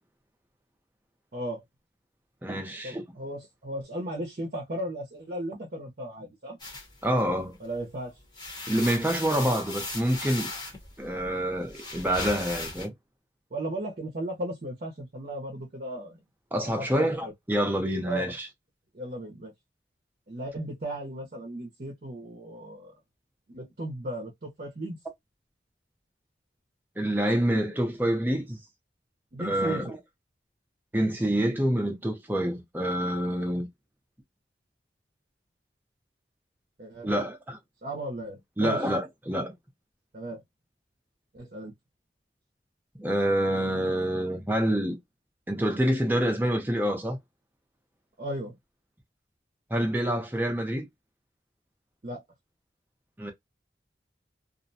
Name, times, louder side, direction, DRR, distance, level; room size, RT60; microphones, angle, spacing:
voice 1, 1.3-1.6 2.8-6.6 7.6-8.1 13.5-16.2 16.8-17.3 18.0-18.4 18.9-19.5 20.3-22.9 23.5-25.0 29.3-29.9 36.8-37.1 37.8-38.8 40.1-40.4 41.3-41.7 48.2-48.6 52.0-52.2, right 1 dB, 50° right, 0.7 m, -36 dB
voice 2, 2.4-3.0 7.0-7.6 8.7-10.5 11.0-12.9 16.5-18.5 27.0-28.6 29.4-30.0 30.9-33.7 37.0-37.6 38.6-39.5 43.0-45.0 45.5-47.2 49.7-50.9 53.2-53.3, equal, 10° right, 0.6 m, -27 dB
sound 1, 6.6-7.8 8.2-12.9, left 2 dB, 25° left, 0.8 m, -38 dB
2.5 x 2.1 x 2.6 m
head